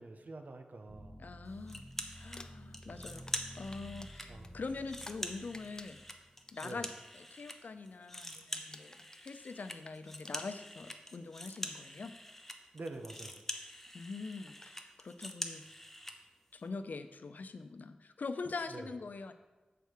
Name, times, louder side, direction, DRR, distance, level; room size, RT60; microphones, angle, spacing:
voice 1, 0.0-1.2 2.8-3.1 4.3-4.6 6.6-6.9 12.7-13.4 18.7-18.9, right 2 dB, 70° right, 6 dB, 0.8 m, -46 dB
sound 1, 0.9-6.6, equal, 10° right, 1.2 m, -52 dB
voice 2, 1.2-1.8 2.1-6.0 6.5-6.9 7.1-12.1 13.9-15.7 16.5-19.3, left 4 dB, 75° left, 9 dB, 0.5 m, -43 dB
sound 2, 1.7-2.4 2.7-4.3 4.7-7.6 7.8-16.2, left 1 dB, 10° left, 0.8 m, -45 dB
Crumpling crinkling, 2.2-5.3 5.5-6.9 7.3-7.6 7.9-8.2 8.5-10.9 11.9-12.0 14.0-14.1 14.5-14.8, left 2 dB, 25° left, 0.4 m, -54 dB
7.0 x 4.6 x 6.4 m, 1.2 s
wide cardioid pair, 55°, 3 cm